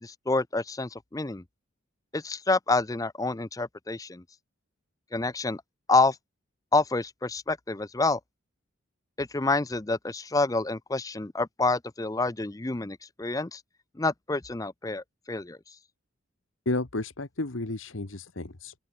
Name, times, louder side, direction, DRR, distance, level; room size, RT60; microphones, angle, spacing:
voice 1, 0.0-1.4 2.1-4.2 5.1-5.6 5.9-6.2 6.7-8.2 9.2-13.6 14.0-15.6, left 3 dB, 15° left, 0.5 m, -28 dB
voice 2, 16.6-18.7, left 2 dB, 70° left, 1.5 m, -32 dB
open air
head